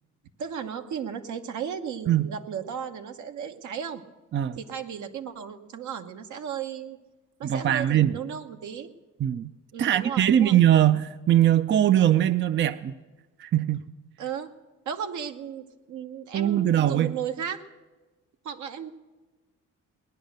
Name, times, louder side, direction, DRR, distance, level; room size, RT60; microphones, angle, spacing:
voice 1, 0.4-4.0 4.6-7.0 7.4-8.9 9.7-10.6 14.2-14.5 14.8-17.6 18.4-18.9, right 8 dB, 75° right, 7 dB, 1.1 m, -35 dB
voice 2, 7.4-8.1 9.2-9.5 9.8-12.9 13.4-13.8 16.3-17.2, right 11 dB, 40° right, 13 dB, 0.4 m, -21 dB
18.5 x 10.5 x 6.5 m, 1.2 s
cardioid pair, 90°, 30 cm